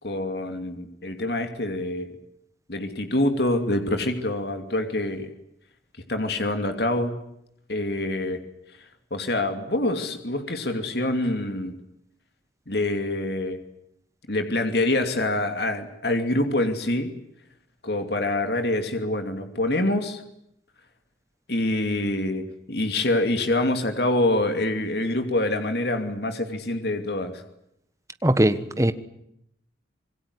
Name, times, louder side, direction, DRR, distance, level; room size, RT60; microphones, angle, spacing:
voice 1, 0.0-2.1 2.7-5.3 6.1-7.1 7.7-8.4 9.1-11.7 12.7-13.6 14.3-17.1 17.8-20.2 21.5-27.4, left 1 dB, 55° left, 2.8 m, -25 dB
voice 2, 28.2-28.9, right 1 dB, 15° right, 1.4 m, -20 dB
26.5 x 21.5 x 9.7 m
head